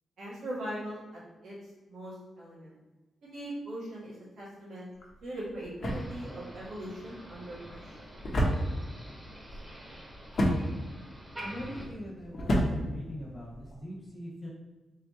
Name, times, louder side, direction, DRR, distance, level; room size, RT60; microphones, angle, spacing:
voice 1, 0.2-1.6 1.9-2.7 3.2-4.9 5.2-7.9, right 1 dB, 80° right, -8 dB, 1.4 m, -40 dB
sound 1, 4.9-13.8, equal, 55° left, 0.9 m, -33 dB
Motor vehicle (road), 5.9-11.9, right 1 dB, 15° right, 1.1 m, -47 dB
voice 2, 11.4-14.5, equal, 35° left, -2 dB, 1.4 m, -42 dB
3.6 x 3.4 x 2.9 m, 1.2 s
cardioid pair, 75°, 0 cm